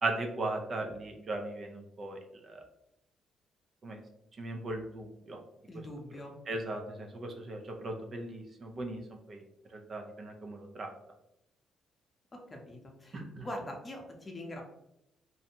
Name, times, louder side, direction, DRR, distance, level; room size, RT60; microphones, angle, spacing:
voice 1, 0.0-2.2 2.4-2.6 3.8-4.0 4.4-5.4 6.5-9.0 9.3-9.4 9.7-10.9 13.1-13.5, right 2 dB, 45° right, 3 dB, 0.4 m, -37 dB
voice 2, 5.7-6.4 12.3-14.6, left 1 dB, 30° left, 1 dB, 0.7 m, -43 dB
2.5 x 2.1 x 2.7 m, 0.83 s
cardioid pair, 90°, 0 cm